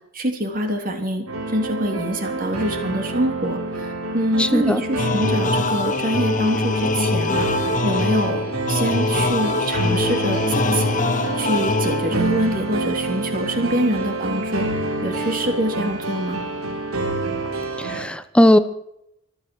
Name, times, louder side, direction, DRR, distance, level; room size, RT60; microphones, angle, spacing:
voice 1, 0.1-1.2 1.5-8.4 8.7-11.0 11.4-14.7 15.0-16.4, right 1 dB, 40° right, 4 dB, 3.0 m, -25 dB
sound 1, 1.3-18.0, right 2 dB, 85° right, 3.7 m, -27 dB
voice 2, 4.4-4.8 17.8-18.6, left 1 dB, 5° left, 12 dB, 0.9 m, -17 dB
sound 2, 5.0-12.4, left 3 dB, 35° left, 1.1 m, -23 dB
24.5 x 8.9 x 6.1 m, 0.78 s
head